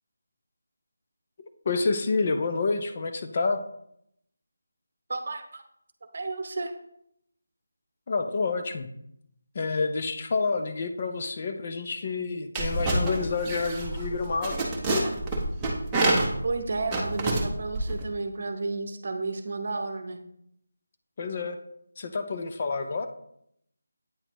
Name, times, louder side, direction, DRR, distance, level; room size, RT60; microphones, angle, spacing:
voice 1, 1.7-3.6 8.1-8.9 9.5-14.6 21.2-21.6 22.0-23.1, left 4 dB, 35° left, 7 dB, 0.4 m, -28 dB
voice 2, 5.1-5.6 6.1-6.7 16.1-20.2, right 3 dB, 50° right, 7 dB, 0.8 m, -32 dB
sound 1, 12.6-18.0, right 2 dB, 10° right, 0.7 m, -28 dB
8.8 x 4.2 x 3.0 m, 0.74 s
figure-of-eight pair, 170°, 0 cm